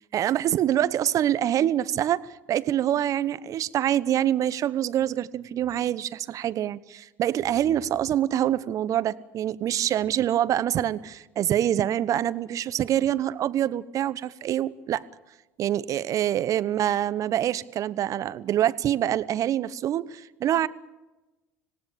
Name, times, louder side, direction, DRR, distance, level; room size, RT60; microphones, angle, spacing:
voice 1, 0.1-2.2 2.5-15.0 15.6-20.7, right 11 dB, 50° right, 17 dB, 1.0 m, -25 dB
26.0 x 19.0 x 6.9 m, 1.1 s
figure-of-eight pair, 60°, 7 cm